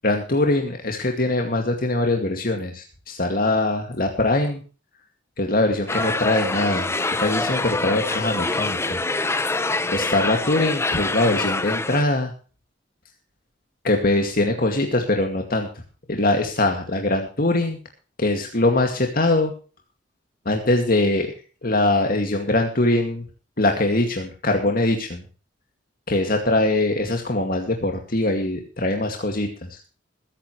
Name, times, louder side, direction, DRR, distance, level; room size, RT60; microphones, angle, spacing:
voice 1, 0.0-4.6 5.4-6.9 7.2-9.0 9.5-12.3 13.8-15.7 16.1-17.8 18.2-19.5 20.5-21.3 21.6-23.2 23.6-25.2 26.1-29.8, left 2 dB, 50° left, 3 dB, 2.3 m, -22 dB
sound 1, 5.9-12.0, left 2 dB, 15° left, 0.7 m, -25 dB
21.5 x 10.0 x 3.2 m, 0.36 s
head